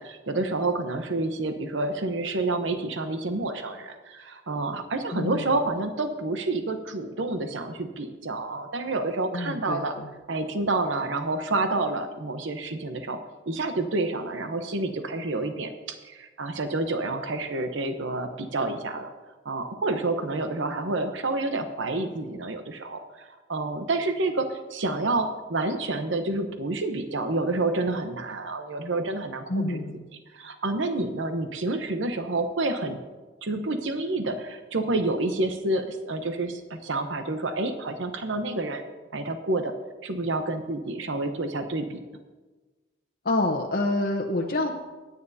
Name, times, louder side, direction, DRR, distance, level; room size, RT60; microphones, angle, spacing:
voice 1, 0.0-9.9 10.3-13.2 13.5-19.1 19.4-29.8 30.3-33.0 33.4-38.8 39.1-39.7 40.0-42.0, right 2 dB, 80° right, 7 dB, 0.9 m, -29 dB
voice 2, 5.1-5.5 9.3-9.8 29.5-30.0 43.2-44.8, left 2 dB, 50° left, 0 dB, 0.9 m, -27 dB
25.0 x 9.4 x 2.8 m, 1.3 s
head